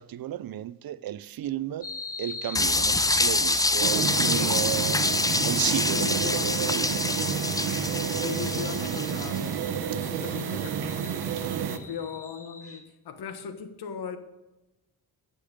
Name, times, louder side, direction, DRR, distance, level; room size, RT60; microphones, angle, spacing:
voice 1, 0.0-1.9 2.2-5.0 5.4-7.2 10.0-10.2, right 12 dB, 65° right, 0.6 m, -33 dB
sound 1, 1.8-12.8, left 3 dB, 35° left, 1.8 m, -40 dB
sound 2, 2.5-9.4, left 2 dB, 10° left, 0.5 m, -26 dB
sound 3, 3.8-11.8, right 8 dB, 85° right, 0.9 m, -30 dB
voice 2, 4.2-4.6 5.9-6.6 8.1-11.3 11.7-14.2, left 7 dB, 80° left, 1.2 m, -38 dB
14.5 x 6.9 x 5.2 m
cardioid pair, 80°, 37 cm